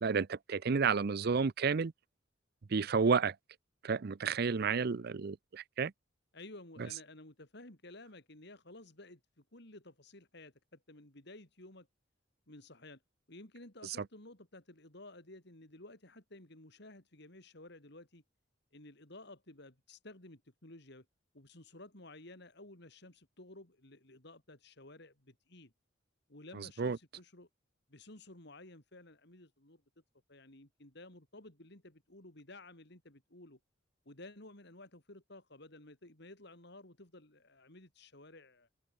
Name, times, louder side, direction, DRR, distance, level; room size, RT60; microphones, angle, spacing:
voice 1, 0.0-1.9 2.7-3.3 3.8-5.9 26.8-27.0, right 5 dB, 55° right, 0.5 m, -31 dB
voice 2, 4.6-5.2 6.3-11.9 12.5-13.0 13.3-18.2 18.7-21.1 21.3-25.7 26.3-27.5 27.9-29.8 30.3-33.6 34.1-38.7, left 2 dB, 60° left, 3.7 m, -54 dB
head